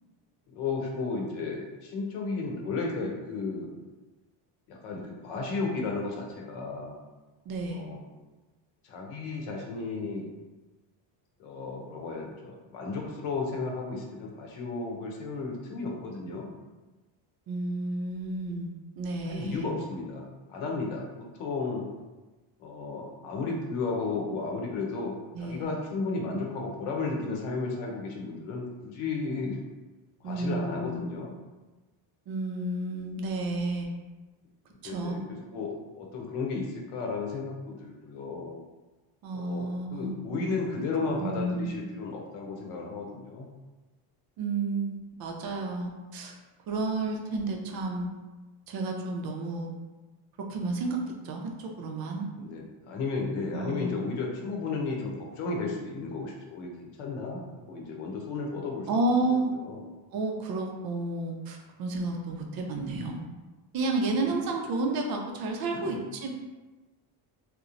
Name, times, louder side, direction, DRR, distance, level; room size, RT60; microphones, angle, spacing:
voice 1, 0.5-3.7 4.7-7.0 7.7-8.0 8.8-10.3 11.4-16.5 19.3-21.8 22.6-29.6 30.2-31.3 34.8-35.2 35.5-38.6 39.3-43.5 52.4-58.9 59.5-59.8 64.2-64.5 65.7-66.0, left 3 dB, 80° left, 0 dB, 0.8 m, -34 dB
voice 2, 7.5-7.9 17.5-19.7 25.3-25.7 30.2-31.0 32.3-33.9 34.8-35.2 39.2-40.1 41.2-41.7 44.4-46.3 46.7-48.1 48.7-49.7 50.5-52.3 53.5-54.1 58.9-59.5 60.1-63.2 63.7-66.3, right 2 dB, 50° right, 2 dB, 0.4 m, -31 dB
2.8 x 2.1 x 2.4 m, 1.2 s
cardioid pair, 120°, 49 cm